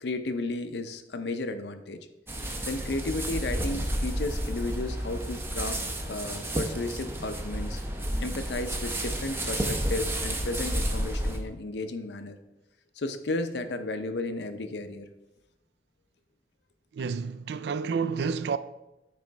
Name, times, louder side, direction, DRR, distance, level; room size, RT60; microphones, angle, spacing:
voice 1, 0.0-2.1 2.7-7.8 8.2-12.4 13.0-15.1, left 2 dB, 75° left, 0.6 m, -33 dB
sound 1, 2.3-11.4, right 1 dB, 15° right, 0.6 m, -31 dB
voice 2, 16.9-18.6, right 5 dB, 70° right, 0.3 m, -29 dB
9.1 x 3.1 x 4.6 m
head